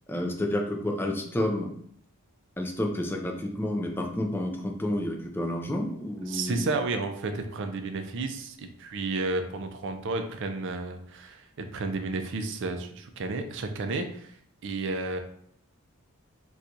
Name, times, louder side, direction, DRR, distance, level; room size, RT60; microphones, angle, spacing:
voice 1, 0.1-1.7 2.6-6.7, left 1 dB, 10° left, 1 dB, 0.4 m, -30 dB
voice 2, 6.2-15.2, right 3 dB, 60° right, 6 dB, 0.4 m, -32 dB
4.3 x 2.3 x 2.6 m, 0.66 s
head